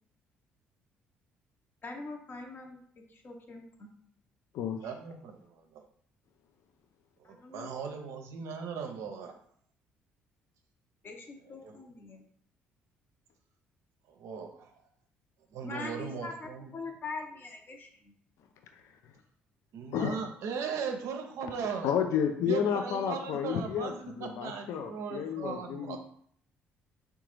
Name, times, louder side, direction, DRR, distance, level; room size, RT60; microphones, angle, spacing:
voice 1, 1.8-3.9 7.2-8.0 11.0-12.3 15.6-18.2, left 3 dB, 40° left, 2 dB, 0.8 m, -43 dB
voice 2, 4.8-5.8 7.2-9.3 11.6-11.8 14.1-14.7 15.5-16.7 19.7-22.0 22.5-26.0, right 6 dB, 65° right, 5 dB, 0.5 m, -38 dB
voice 3, 21.8-26.0, left 8 dB, 65° left, 6 dB, 0.4 m, -31 dB
3.8 x 2.3 x 3.0 m, 0.64 s
hypercardioid pair, 55°, 5 cm